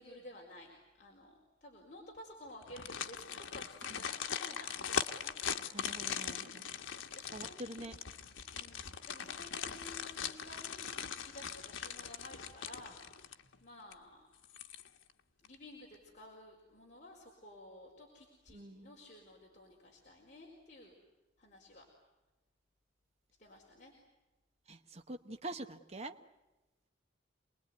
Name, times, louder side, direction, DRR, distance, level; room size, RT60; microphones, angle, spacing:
voice 1, 0.0-5.3 6.4-6.8 7.1-7.9 8.5-14.2 15.4-20.9 21.4-21.8 23.4-23.9, left 1 dB, 40° left, -2 dB, 4.7 m, -54 dB
sound 1, 2.6-13.6 13.9-14.0 14.4-15.1 15.4-15.6, left 7 dB, 90° left, 1.3 m, -41 dB
voice 2, 5.7-6.6 7.3-8.0 18.5-18.9 24.7-26.1, right 2 dB, 35° right, 6 dB, 1.1 m, -45 dB
28.0 x 21.0 x 9.5 m, 1.1 s
head